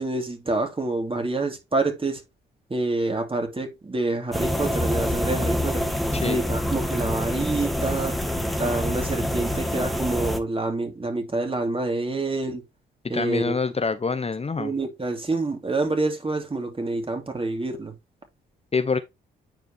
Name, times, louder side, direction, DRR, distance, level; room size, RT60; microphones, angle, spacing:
voice 1, 0.0-2.2 2.7-5.9 6.2-8.2 8.6-12.6 13.1-13.5 14.6-17.9, right 2 dB, 25° right, 2.9 m, -27 dB
sound 1, 4.3-10.4, equal, ahead, 1.8 m, -26 dB
voice 2, 13.1-14.7 18.7-19.0, left 4 dB, 30° left, 0.9 m, -25 dB
9.3 x 4.6 x 2.9 m
supercardioid pair, 50°, 20 cm